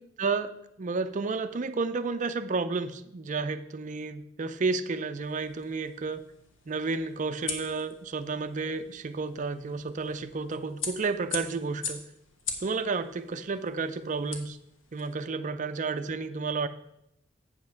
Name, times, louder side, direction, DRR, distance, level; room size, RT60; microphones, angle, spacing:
voice 1, 0.2-0.5 0.8-6.2 6.7-12.0 12.6-14.6 14.9-16.7, right 4 dB, 40° right, 11 dB, 0.5 m, -31 dB
sound 1, 5.2-15.1, left 5 dB, 90° left, 1.2 m, -42 dB
8.3 x 5.4 x 5.8 m, 0.81 s
head